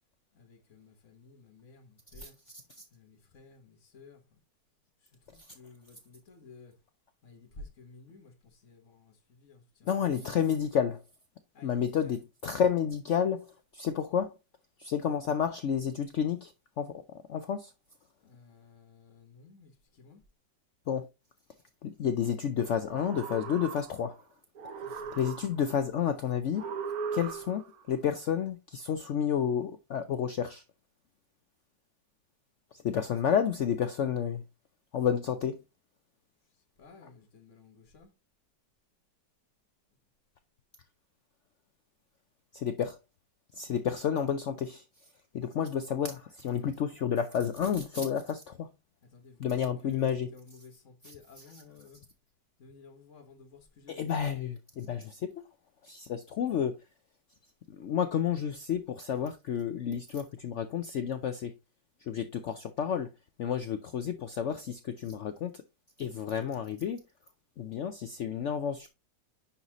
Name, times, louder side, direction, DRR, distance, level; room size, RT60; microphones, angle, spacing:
voice 1, 0.3-2.4 2.9-4.4 5.0-6.8 7.2-9.9 10.1-10.4 11.5-12.2 18.2-20.2 24.8-25.2 36.8-38.1 49.0-49.4 49.8-52.1 52.6-54.1, left 3 dB, 45° left, 1.6 m, -54 dB
voice 2, 9.9-11.0 11.6-14.3 14.8-17.0 17.3-17.7 20.9-21.1 21.8-24.2 24.9-26.6 27.1-30.6 32.7-34.4 34.9-35.6 42.5-43.0 43.5-44.8 45.3-48.7 49.4-50.3 51.0-51.1 53.9-55.3 55.8-56.7 57.8-61.5 62.0-63.1 63.4-65.6 66.0-67.0 67.6-68.9, left 8 dB, 80° left, 0.6 m, -30 dB
sound 1, 22.8-24.2 24.6-25.8 26.5-27.8, right 6 dB, 60° right, 1.3 m, -38 dB
9.9 x 4.1 x 2.9 m
omnidirectional pair, 1.9 m